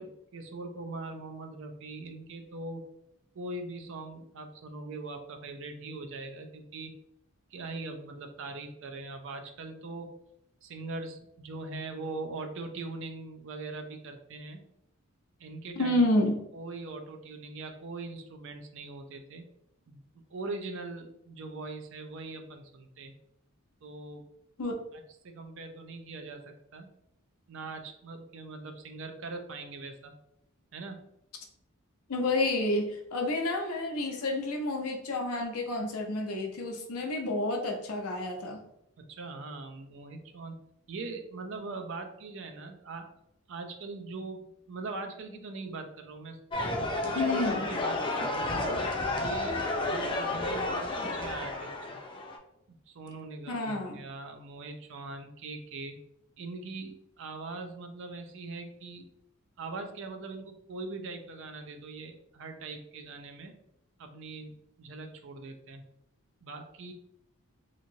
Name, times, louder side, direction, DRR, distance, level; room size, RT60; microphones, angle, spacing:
voice 1, 0.0-2.9 3.3-6.9 7.5-10.2 10.6-14.6 15.4-16.0 16.5-19.4 19.9-20.0 20.3-23.1 23.8-24.2 24.9-26.9 27.5-30.1 30.7-31.0 39.0-40.6 40.9-43.1 43.5-46.4 47.0-48.9 49.1-52.0 52.9-56.0 56.4-59.1 59.6-63.5 64.0-65.8 66.4-66.9, right 3 dB, 60° right, 5 dB, 0.4 m, -41 dB
voice 2, 15.8-16.4 24.6-24.7 32.1-38.6 47.1-47.7 53.5-54.0, left 2 dB, 85° left, 3 dB, 0.6 m, -29 dB
sound 1, 46.5-52.4, left 2 dB, 20° left, 0.3 m, -31 dB
2.9 x 2.7 x 2.6 m, 0.79 s
head